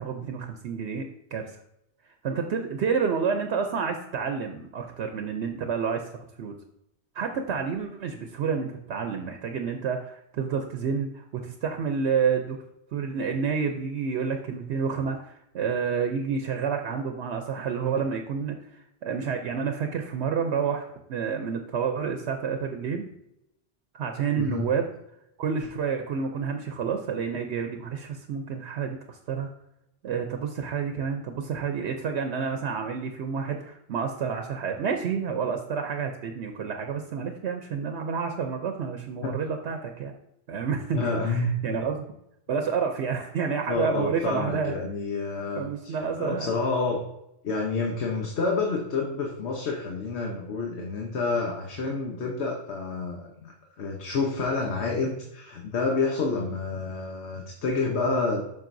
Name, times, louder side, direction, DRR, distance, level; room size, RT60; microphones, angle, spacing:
voice 1, 0.0-1.6 2.0-6.6 7.1-12.6 12.9-23.1 23.9-24.9 25.4-29.5 30.0-40.1 40.5-42.0 42.5-44.7 45.5-46.5, right 6 dB, 75° right, 5 dB, 0.9 m, -29 dB
voice 2, 40.9-41.8 43.7-47.0 47.4-53.5 53.8-58.4, left 3 dB, 75° left, 0 dB, 1.2 m, -28 dB
7.4 x 6.0 x 2.6 m, 0.83 s
omnidirectional pair, 1.1 m